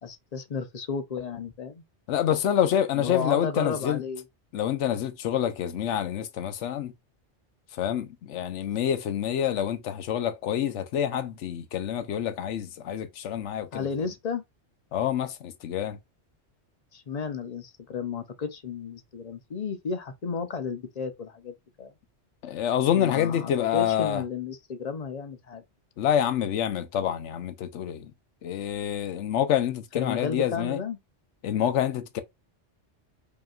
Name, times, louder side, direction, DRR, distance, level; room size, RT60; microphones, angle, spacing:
voice 1, 0.0-1.8 2.9-4.2 13.7-14.4 16.9-21.9 22.9-25.6 29.9-31.0, left 5 dB, 45° left, 0.6 m, -33 dB
voice 2, 2.1-4.0 4.5-6.9 7.7-13.9 14.9-16.0 22.4-24.2 26.0-28.1 28.4-30.8 31.4-32.2, left 10 dB, 85° left, 1.0 m, -27 dB
5.1 x 2.9 x 2.3 m
omnidirectional pair, 1.2 m